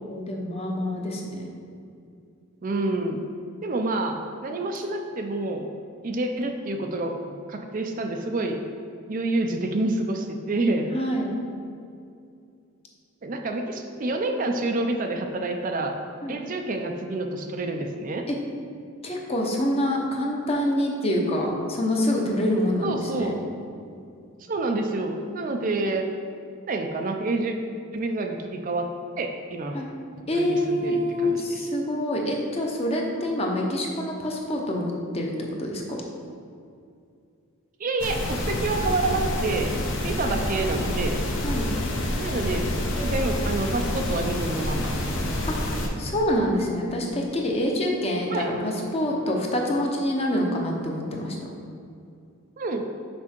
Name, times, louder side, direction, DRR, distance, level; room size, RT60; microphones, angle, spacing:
voice 1, 0.1-1.5 10.9-11.3 16.2-16.4 18.3-18.4 19.0-23.4 29.7-29.9 30.3-35.3 35.6-36.0 41.4-41.7 45.5-45.6 46.0-51.4, left 1 dB, 30° left, 0 dB, 0.8 m, -26 dB
voice 2, 2.6-3.2 3.6-5.7 6.0-8.6 9.1-11.0 13.2-16.0 16.3-18.3 22.8-23.4 24.5-26.1 26.7-27.6 27.9-28.9 29.2-29.8 30.3-31.7 37.8-39.7 40.0-41.2 42.2-44.9 48.3-48.5 52.6-52.9, right 2 dB, 40° right, 4 dB, 0.4 m, -28 dB
sound 1, 38.0-45.9, left 1 dB, 60° left, 0.9 m, -28 dB
6.0 x 5.4 x 4.4 m, 2.4 s
head